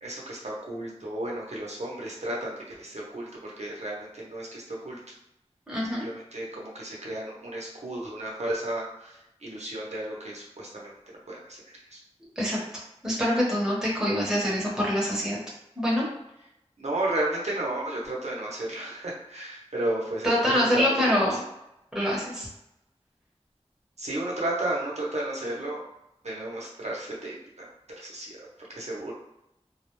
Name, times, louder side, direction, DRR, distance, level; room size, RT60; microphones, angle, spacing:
voice 1, 0.0-5.0 6.0-10.9 11.3-11.6 11.9-12.0 16.8-21.0 21.3-21.4 24.0-25.8 26.2-27.7 27.9-29.1, right 1 dB, 75° right, -4 dB, 0.8 m, -33 dB
voice 2, 5.7-6.0 12.4-12.6 13.0-15.4 15.8-16.0 20.2-21.4 21.9-22.5, equal, 5° right, -6 dB, 1.0 m, -25 dB
2.3 x 2.1 x 3.0 m, 0.86 s
wide cardioid pair, 55°, 11 cm